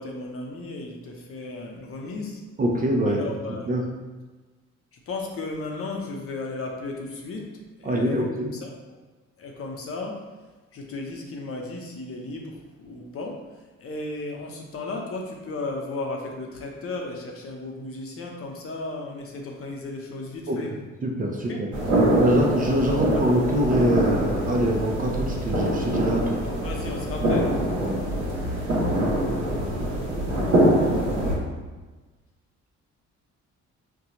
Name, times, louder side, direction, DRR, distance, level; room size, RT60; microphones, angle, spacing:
voice 1, 0.0-2.4 3.1-3.8 5.1-7.5 7.8-8.2 8.5-8.7 9.4-10.2 10.7-13.4 13.8-20.7 21.5-21.6 22.9-23.0 26.4-27.5, left 2 dB, 50° left, 0 dB, 0.7 m, -34 dB
voice 2, 2.6-3.2 3.7-3.8 7.8-8.5 20.5-20.6 21.0-21.7 22.1-26.4 27.8-28.1, right 1 dB, 30° right, 0 dB, 0.5 m, -24 dB
sound 1, 21.7-31.3, right 1 dB, 75° right, 1.1 m, -24 dB
4.1 x 2.2 x 2.8 m, 1.3 s
cardioid pair, 90°, 30 cm